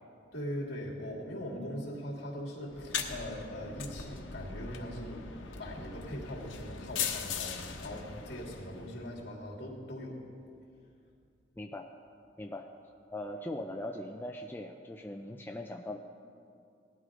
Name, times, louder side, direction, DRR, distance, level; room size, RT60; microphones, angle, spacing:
voice 1, 0.3-10.2, equal, 60° left, -3 dB, 2.9 m, -41 dB
sound 1, 2.7-9.1, left 7 dB, 85° left, 1.1 m, -40 dB
voice 2, 11.6-11.9 12.4-12.7 13.1-16.0, left 1 dB, 10° left, 2 dB, 0.4 m, -40 dB
18.0 x 12.5 x 3.8 m, 2.4 s
head